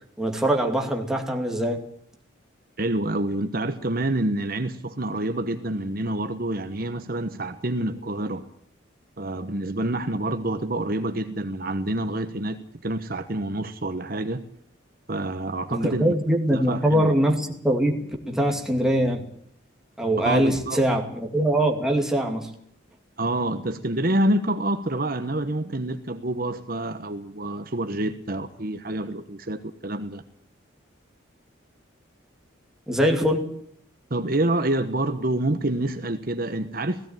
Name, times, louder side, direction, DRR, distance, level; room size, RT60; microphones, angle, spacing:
voice 1, 0.2-1.9 15.7-19.3 20.0-22.5 32.9-33.5, right 1 dB, 5° right, 0 dB, 2.5 m, -23 dB
voice 2, 2.8-8.5 9.2-14.4 15.1-16.1 16.5-17.1 20.2-20.8 23.2-30.2 34.1-37.1, right 1 dB, 50° right, 8 dB, 1.2 m, -27 dB
17.0 x 17.0 x 9.2 m, 0.66 s
head